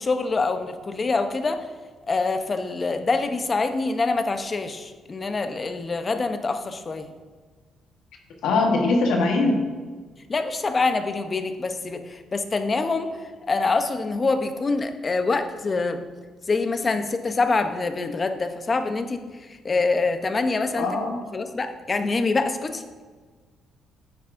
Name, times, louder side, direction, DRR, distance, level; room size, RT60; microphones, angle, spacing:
voice 1, 0.0-1.6 2.1-7.1 10.3-13.1 13.5-16.0 16.5-19.2 19.5-20.9 21.3-23.0, left 3 dB, 35° left, 7 dB, 0.8 m, -25 dB
voice 2, 8.4-9.6 20.7-21.1, left 3 dB, 85° left, 1 dB, 1.3 m, -21 dB
9.4 x 9.2 x 2.6 m, 1.5 s
cardioid pair, 85°, 0 cm